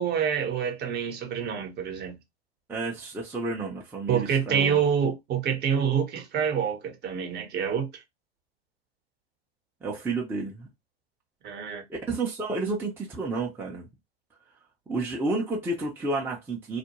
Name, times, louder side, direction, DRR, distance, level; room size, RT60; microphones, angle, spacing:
voice 1, 0.0-2.2 4.1-8.0 11.4-11.8, right 7 dB, 30° right, 0.9 m, -27 dB
voice 2, 2.7-4.8 9.8-10.7 11.9-13.9 14.9-16.8, right 3 dB, 5° right, 0.6 m, -31 dB
2.4 x 2.1 x 2.9 m
hypercardioid pair, 100°, 33 cm